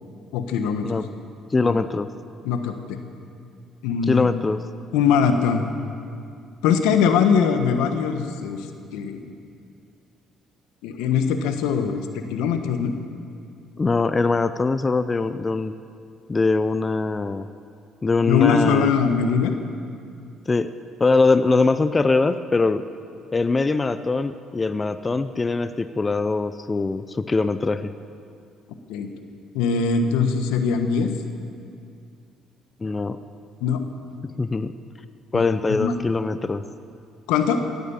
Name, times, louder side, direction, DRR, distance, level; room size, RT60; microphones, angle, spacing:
voice 1, 0.3-1.0 1.6-1.7 2.4-3.0 3.8-4.3 4.9-5.7 6.6-9.2 10.8-12.9 18.3-19.5 28.9-29.1 29.5-31.1 33.6-33.8 35.3-36.0 37.3-37.6, left 6 dB, 85° left, 7 dB, 1.2 m, -22 dB
voice 2, 1.5-2.1 4.1-4.6 13.8-15.7 16.3-17.5 18.0-18.9 20.5-20.7 21.0-22.8 23.3-27.9 32.8-33.2 34.2-34.7 35.3-36.6, left 3 dB, 25° left, 12 dB, 0.6 m, -22 dB
16.5 x 9.3 x 7.1 m, 2.4 s
supercardioid pair, 70°, 0 cm